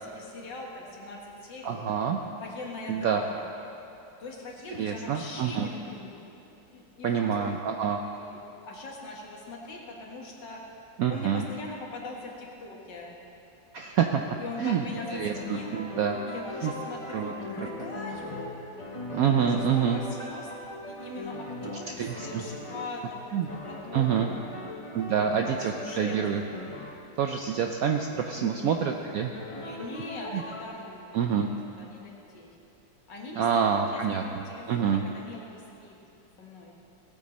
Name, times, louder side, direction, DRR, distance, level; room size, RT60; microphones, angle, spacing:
voice 1, 0.0-2.0 2.4-3.4 4.2-6.2 6.7-8.4 8.7-10.8 11.1-13.2 14.0-15.8 16.2-18.6 19.2-20.5 20.8-24.5 25.2-26.5 28.3-28.7 29.5-31.5 31.8-32.5 33.1-36.0 36.4-36.7, left 2 dB, 70° left, -1 dB, 2.2 m, -41 dB
voice 2, 1.6-2.2 2.9-3.2 4.8-5.7 7.0-8.0 11.0-11.5 13.7-16.2 16.6-16.7 17.1-17.7 19.1-20.0 22.0-22.4 23.3-23.5 23.9-24.3 24.9-26.4 27.2-29.3 30.3-30.4 31.1-31.5 33.4-35.0, right 7 dB, 75° right, 4 dB, 0.8 m, -27 dB
sound 1, 13.9-14.7 15.0-23.0 23.5-27.1 28.7-28.9 29.4-30.6, left 1 dB, 35° left, 0.5 m, -40 dB
17.0 x 8.4 x 4.2 m, 2.9 s
omnidirectional pair, 2.0 m